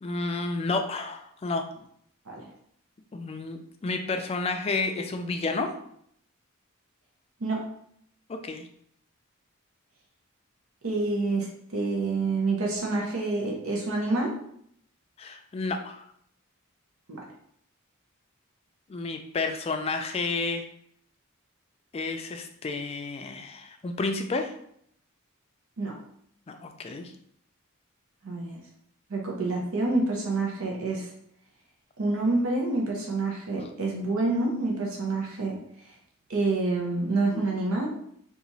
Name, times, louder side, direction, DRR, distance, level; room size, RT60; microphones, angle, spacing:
voice 1, 0.0-1.7 3.1-5.7 8.4-8.6 15.2-16.1 18.9-20.6 21.9-24.5 26.5-27.1 37.3-37.5, left 3 dB, 30° left, 5 dB, 0.3 m, -31 dB
voice 2, 10.8-14.3 17.1-17.2 25.8-25.9 28.2-28.6 29.1-31.1 32.0-35.6 36.3-37.9, right 2 dB, 80° right, -1 dB, 0.7 m, -27 dB
2.9 x 2.4 x 3.9 m, 0.68 s
head